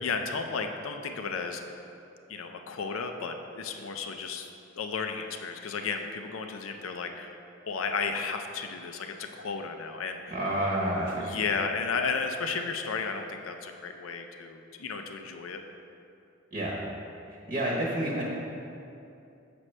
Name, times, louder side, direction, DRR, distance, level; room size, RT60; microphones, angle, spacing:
voice 1, 0.0-1.8 2.3-4.5 4.8-7.4 7.7-10.4 11.1-15.6, left 5 dB, 85° left, 5 dB, 0.5 m, -33 dB
voice 2, 10.3-11.4 16.5-16.7 17.3-18.3, right 1 dB, 40° right, -4 dB, 0.9 m, -29 dB
7.6 x 6.1 x 3.2 m, 2.7 s
head